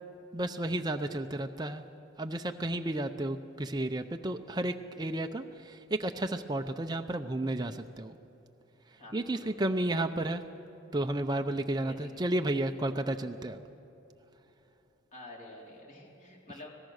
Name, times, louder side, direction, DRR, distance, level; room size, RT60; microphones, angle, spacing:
voice 1, 0.3-1.8 2.2-8.2 9.1-10.4 10.9-13.6, right 1 dB, 20° right, 5 dB, 0.6 m, -32 dB
voice 2, 9.0-9.7 11.8-12.2 15.1-16.7, left 1 dB, 40° left, -2 dB, 3.9 m, -49 dB
25.0 x 18.0 x 6.5 m, 3.0 s
head